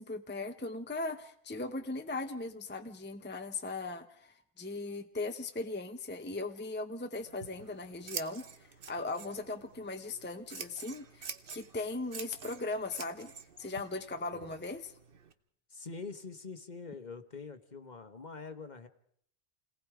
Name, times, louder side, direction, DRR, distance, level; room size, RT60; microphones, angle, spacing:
voice 1, 0.0-8.4 8.9-13.3 13.6-14.9, left 2 dB, 10° left, 7 dB, 0.8 m, -38 dB
Scissors, 7.2-15.3, right 6 dB, 55° right, 1.1 m, -48 dB
voice 2, 14.3-14.7 15.7-18.9, left 4 dB, 40° left, 9 dB, 1.3 m, -45 dB
28.5 x 18.5 x 4.9 m, 0.64 s
omnidirectional pair, 1.2 m